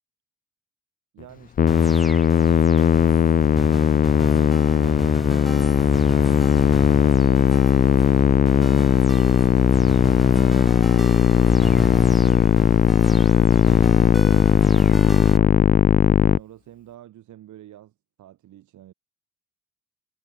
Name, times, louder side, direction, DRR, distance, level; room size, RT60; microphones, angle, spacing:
voice 1, 1.1-6.2 13.8-15.0 15.3-18.9, right 12 dB, 75° right, 3.2 m, -46 dB
Musical instrument, 1.6-16.4, left 8 dB, 30° left, 0.4 m, -17 dB
sound 1, 1.7-15.4, equal, ahead, 2.5 m, -33 dB
cardioid pair, 90°, 30 cm